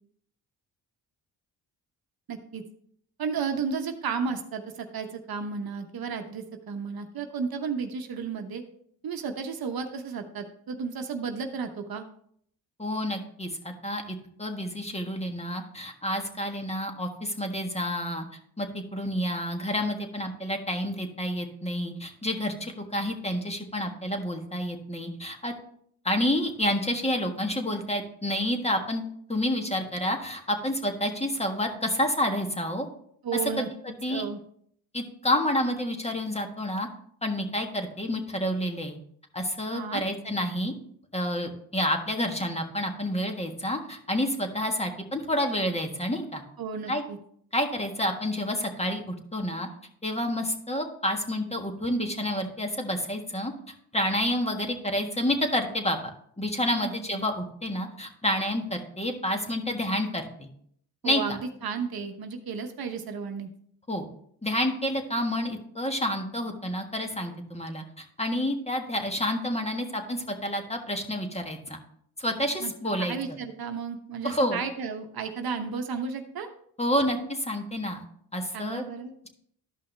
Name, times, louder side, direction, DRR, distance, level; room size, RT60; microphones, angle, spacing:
voice 1, 2.3-2.6 3.2-8.6 9.0-12.0 33.2-33.7 34.1-34.4 39.7-40.0 46.6-47.2 56.8-57.3 61.0-63.5 72.6-72.7 73.0-76.5 78.5-79.1, right 5 dB, 60° right, 6 dB, 1.0 m, -33 dB
voice 2, 12.8-18.2 18.6-25.5 26.0-29.0 29.3-32.9 33.6-34.2 34.9-36.9 37.2-39.0 39.3-40.7 41.1-46.4 46.9-47.0 47.5-49.7 50.0-53.5 53.9-56.0 56.4-60.5 61.0-61.4 63.9-64.1 64.4-71.8 72.2-73.4 74.2-74.6 76.8-78.0 78.3-78.8, left 1 dB, 15° left, 4 dB, 1.5 m, -29 dB
12.0 x 5.5 x 3.3 m, 0.66 s
cardioid pair, 65°, 41 cm